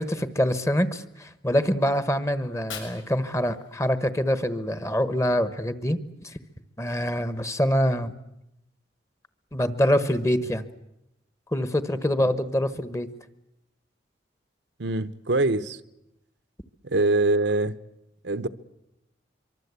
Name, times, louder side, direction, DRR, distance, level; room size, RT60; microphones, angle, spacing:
voice 1, 0.0-6.0 6.2-6.3 6.8-8.1 9.5-10.6 11.5-13.1, equal, 15° left, 1.1 m, -25 dB
Fire, 2.4-4.4, left 6 dB, 90° left, 7.0 m, -44 dB
voice 2, 14.8-15.8 16.8-17.7 18.2-18.5, right 2 dB, 70° right, 1.0 m, -23 dB
24.5 x 24.0 x 8.3 m
head